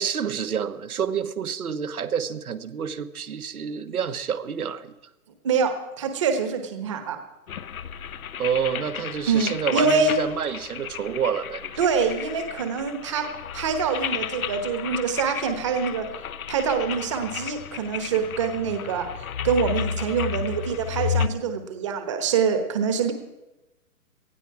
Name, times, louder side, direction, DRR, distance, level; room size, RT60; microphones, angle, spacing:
voice 1, 0.0-4.9 8.4-11.8, right 7 dB, 85° right, 10 dB, 1.4 m, -28 dB
voice 2, 5.4-7.2 9.3-10.2 11.8-13.3 13.5-16.1 16.5-19.1 19.4-23.1, right 5 dB, 20° right, 7 dB, 1.1 m, -25 dB
sound 1, 7.5-21.3, left 8 dB, 75° left, 0.9 m, -33 dB
19.0 x 13.5 x 4.8 m, 1.0 s
hypercardioid pair, 175°, 43 cm